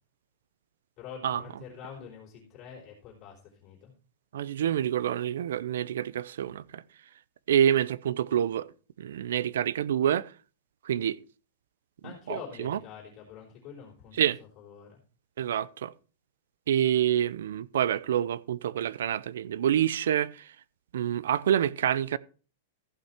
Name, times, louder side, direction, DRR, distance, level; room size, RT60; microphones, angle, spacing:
voice 1, 1.0-3.9 12.0-14.2 14.6-15.0, left 7 dB, 30° left, 3.7 m, -45 dB
voice 2, 4.3-6.8 7.5-8.7 9.0-10.3 10.8-11.2 12.3-12.8 14.2-14.4 15.4-15.9 16.7-20.4 20.9-22.2, right 10 dB, 75° right, 0.5 m, -27 dB
15.0 x 5.7 x 4.4 m
supercardioid pair, 180°, 0 cm